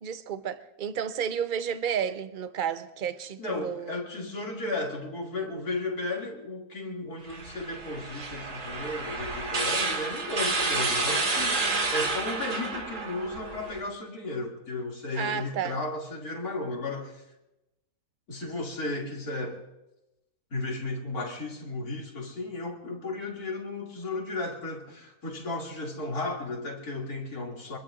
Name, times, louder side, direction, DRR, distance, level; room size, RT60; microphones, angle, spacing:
voice 1, 0.0-4.0 15.1-15.8, right 8 dB, 45° right, 0.7 m, -32 dB
voice 2, 3.4-17.2 18.3-19.6 20.5-27.8, left 2 dB, 70° left, 3.0 m, -34 dB
sound 1, 7.3-13.8, right 3 dB, 80° right, 2.7 m, -30 dB
24.5 x 22.0 x 2.5 m
omnidirectional pair, 1.6 m